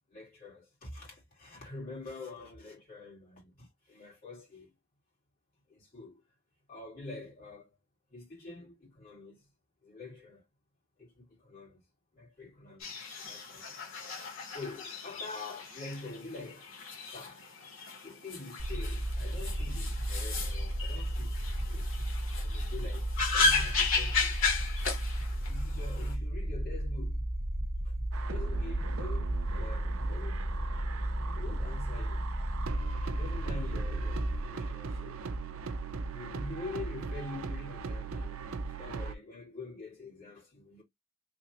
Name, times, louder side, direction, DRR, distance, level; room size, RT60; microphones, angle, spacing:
voice 1, 0.1-4.7 5.7-6.2 6.7-7.7 8.1-9.5 9.8-10.4 11.0-11.8 12.1-13.8 14.5-16.7 17.0-17.4 18.0-21.9 22.4-24.4 25.1-27.2 27.8-28.0 28.2-30.4 31.3-32.3 33.2-35.3 36.0-38.4 38.7-40.8, left 3 dB, 45° left, 2.3 m, -46 dB
sound 1, 12.8-26.1, left 4 dB, 75° left, 1.7 m, -35 dB
sound 2, 18.6-34.4, right 1 dB, 30° right, 0.7 m, -34 dB
sound 3, 28.1-39.2, right 4 dB, 85° right, 0.5 m, -39 dB
3.6 x 2.9 x 2.9 m
head